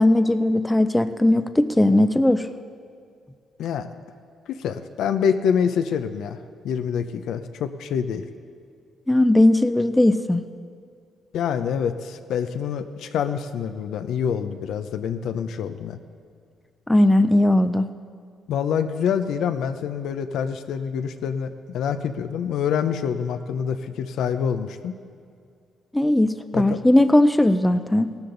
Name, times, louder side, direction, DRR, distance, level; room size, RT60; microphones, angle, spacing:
voice 1, 0.0-2.4 9.1-10.4 16.9-17.9 25.9-28.1, left 1 dB, 10° left, 10 dB, 0.5 m, -18 dB
voice 2, 4.5-6.4 6.6-8.2 11.3-16.0 18.5-25.0 26.5-26.8, left 7 dB, 80° left, 9 dB, 0.6 m, -26 dB
17.0 x 12.5 x 3.9 m, 2.3 s
cardioid pair, 90°, 0 cm